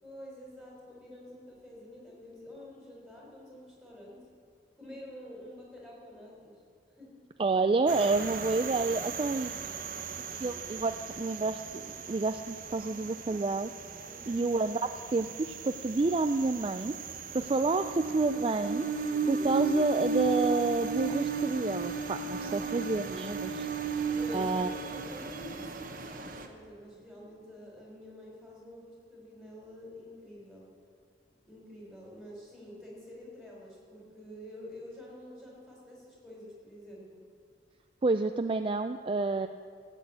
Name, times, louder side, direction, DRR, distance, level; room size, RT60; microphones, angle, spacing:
voice 1, 0.0-4.2 4.8-6.6 6.9-7.1 14.0-14.5 22.4-22.9 24.1-24.6 24.9-30.7 31.4-37.2, left 1 dB, ahead, -4 dB, 4.4 m, -48 dB
voice 2, 7.4-9.6 10.3-13.7 14.3-17.0 17.3-18.9 19.3-23.7 24.3-24.7 38.0-39.5, right 3 dB, 30° right, 8 dB, 0.4 m, -29 dB
sound 1, 7.9-26.5, right 5 dB, 50° right, 1.1 m, -35 dB
15.0 x 8.2 x 8.6 m, 2.2 s
head